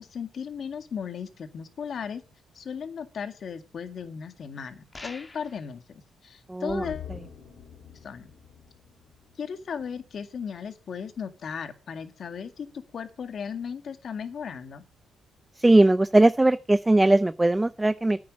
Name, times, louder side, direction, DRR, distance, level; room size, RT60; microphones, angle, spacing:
voice 1, 0.0-2.2 2.5-7.1 8.0-8.3 9.4-14.8, left 6 dB, 55° left, 2.0 m, -36 dB
sound 1, 4.9-5.7, left 2 dB, 25° left, 2.3 m, -43 dB
voice 2, 6.5-6.8 15.6-18.2, right 2 dB, 15° right, 0.5 m, -19 dB
sound 2, 6.7-10.1 10.4-10.5, left 9 dB, 85° left, 4.0 m, -45 dB
9.7 x 8.6 x 7.4 m
cardioid pair, 90°, 0 cm